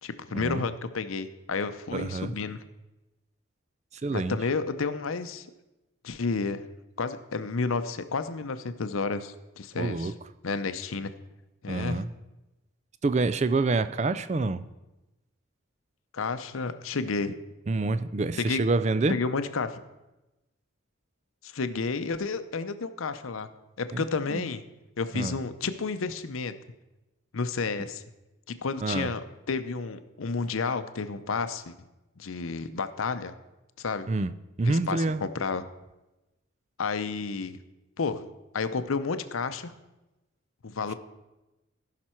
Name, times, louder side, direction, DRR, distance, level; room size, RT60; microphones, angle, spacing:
voice 1, 0.0-2.6 4.1-5.5 6.0-6.6 7.0-10.1 10.4-11.1 11.6-12.0 16.1-17.3 18.4-18.6 19.1-19.8 21.4-23.5 23.8-24.6 25.0-26.5 27.3-28.0 28.5-31.8 32.2-33.3 33.8-34.1 34.6-35.6 36.8-37.6 38.0-38.2 38.5-39.7 40.6-40.9, left 4 dB, 85° left, 11 dB, 0.6 m, -31 dB
voice 2, 1.9-2.3 4.0-4.4 9.7-10.1 11.7-12.1 13.0-14.6 17.7-19.2 23.9-24.0 24.3-24.5 25.1-25.4 28.8-29.1 34.1-34.3 34.6-35.2, right 3 dB, 35° right, 13 dB, 0.4 m, -27 dB
15.0 x 5.9 x 4.4 m, 1.0 s
head